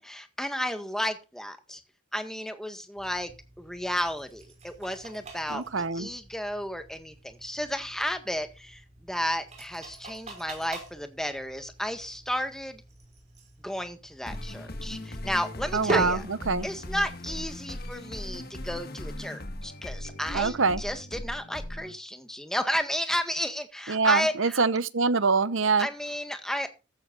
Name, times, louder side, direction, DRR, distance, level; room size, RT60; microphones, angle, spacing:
voice 1, 0.0-1.8 2.1-3.3 3.6-5.6 5.9-12.8 13.6-16.2 16.6-24.6 25.8-26.7, equal, ahead, 1.7 m, -32 dB
jar open close, 3.0-18.8, right 2 dB, 35° right, 5.9 m, -42 dB
voice 2, 5.5-6.1 15.7-16.7 20.3-20.8 23.9-25.9, right 4 dB, 70° right, 0.9 m, -25 dB
sound 1, 14.2-21.9, left 1 dB, 50° left, 1.7 m, -38 dB
15.0 x 13.0 x 2.6 m
head